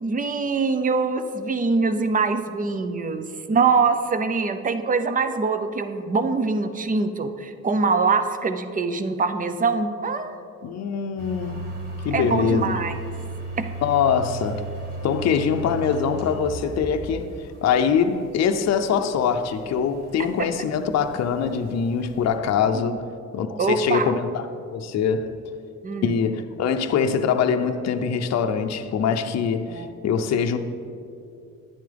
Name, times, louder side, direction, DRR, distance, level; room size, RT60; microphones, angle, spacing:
voice 1, 0.0-10.4 12.1-13.0 13.6-13.7 22.7-23.0 23.6-24.1 25.8-26.2 29.7-29.9, right 4 dB, 25° right, 0.6 m, -24 dB
voice 2, 10.6-11.8 12.0-12.8 13.8-14.6 15.0-17.3 17.6-23.0 23.3-25.3 26.0-30.6, left 6 dB, 60° left, 0.6 m, -23 dB
sound 1, 11.2-22.4, right 2 dB, 75° right, 2.4 m, -37 dB
10.0 x 9.6 x 3.4 m
cardioid pair, 90°, 30 cm